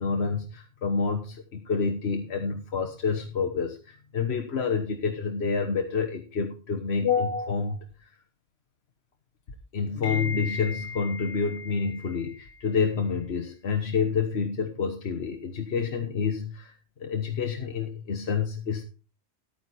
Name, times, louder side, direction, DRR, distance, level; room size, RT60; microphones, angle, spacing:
voice 1, 0.0-8.1 9.7-16.7 17.0-18.8, left 5 dB, 75° left, 4 dB, 1.4 m, -28 dB
12.0 x 9.2 x 4.2 m, 0.31 s
omnidirectional pair, 1.1 m